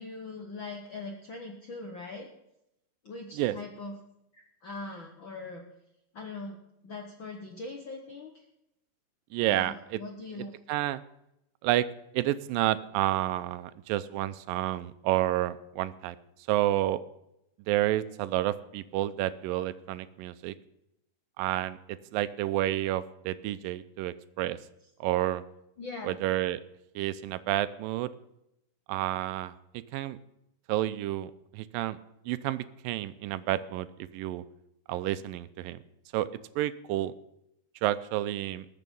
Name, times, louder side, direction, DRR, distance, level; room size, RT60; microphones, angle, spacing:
voice 1, 0.0-2.3 3.0-3.9 4.3-5.6 6.1-6.6 6.8-8.4 9.4-10.5 25.8-26.2, left 3 dB, 65° left, 2 dB, 1.2 m, -41 dB
voice 2, 9.3-10.0 10.7-11.0 11.6-11.9 12.1-16.2 16.5-17.0 17.7-20.6 21.4-24.6 25.0-25.4 26.0-26.6 27.0-28.1 28.9-29.5 29.9-30.2 30.7-32.0 32.3-33.9 34.1-34.4 34.9-35.8 36.1-36.3 36.6-37.1 37.8-38.7, right 14 dB, 85° right, 14 dB, 2.3 m, -30 dB
20.5 x 6.8 x 5.4 m, 0.83 s
omnidirectional pair, 4.0 m